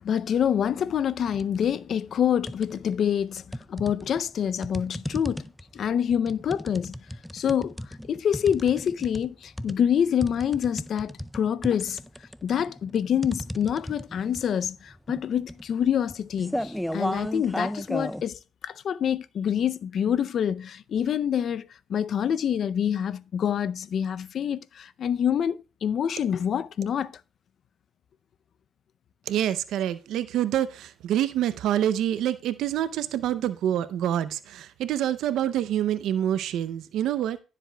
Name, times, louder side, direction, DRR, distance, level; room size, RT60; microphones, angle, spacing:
voice 1, 0.0-5.5 5.7-7.0 7.3-7.8 8.1-12.0 12.4-27.1, left 8 dB, 60° left, 0.4 m, -26 dB
sound 1, 1.3-1.6 2.0-3.0 3.5-18.2, equal, 5° left, 0.4 m, -35 dB
voice 2, 29.3-37.4, right 11 dB, 80° right, 0.5 m, -26 dB
17.0 x 7.5 x 2.2 m
cardioid pair, 90°, 0 cm